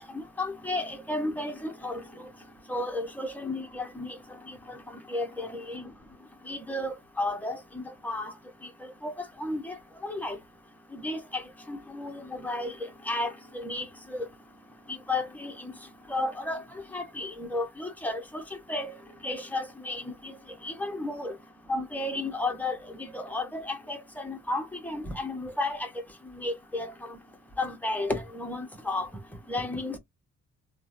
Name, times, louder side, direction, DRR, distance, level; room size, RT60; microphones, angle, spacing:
voice 1, 0.1-2.0 2.7-4.1 5.1-5.9 6.5-8.3 9.0-9.1 9.4-9.7 10.0-10.4 10.9-11.4 11.7-12.7 13.1-14.3 15.1-15.7 16.1-16.6 16.9-18.4 18.7-18.9 19.2-20.1 20.6-21.3 21.7-25.9 26.4-27.2 27.6-29.1 29.5-30.0, left 2 dB, 5° left, 1.0 m, -33 dB
3.0 x 2.3 x 2.7 m
cardioid pair, 90°, 30 cm